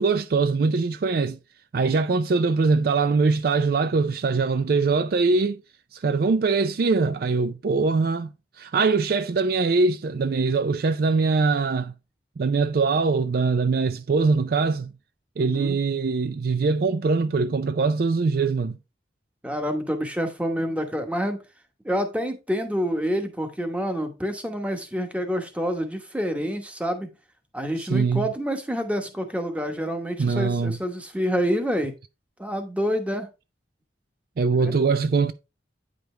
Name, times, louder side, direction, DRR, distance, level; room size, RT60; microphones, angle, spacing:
voice 1, 0.0-1.4 1.7-5.6 5.9-11.9 12.4-14.9 15.4-18.8 27.8-28.3 30.2-30.8 34.4-35.3, right 4 dB, 55° right, 0.4 m, -22 dB
voice 2, 15.4-15.8 19.4-21.4 21.8-27.1 27.5-31.9 32.4-33.3 34.5-34.7, equal, 5° right, 1.0 m, -27 dB
9.2 x 5.1 x 3.2 m
head